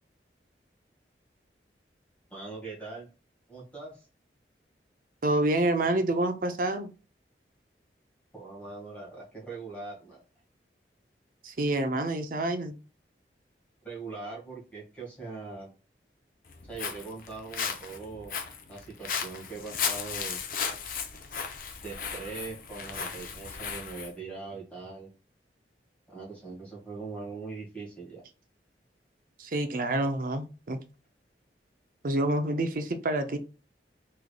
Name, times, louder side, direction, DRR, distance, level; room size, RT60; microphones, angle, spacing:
voice 1, 2.3-3.1 3.5-4.0 8.3-10.2 13.8-15.7 16.7-18.3 18.7-20.4 21.8-25.1 26.1-28.2, right 4 dB, 5° left, -5 dB, 1.5 m, -41 dB
voice 2, 5.2-6.9 11.4-12.7 29.4-30.8 32.0-33.4, right 1 dB, 50° right, 8 dB, 0.5 m, -28 dB
Walk footsteps, 16.5-24.1, left 6 dB, 50° left, 0.5 m, -35 dB
3.7 x 3.2 x 2.2 m, 0.34 s
head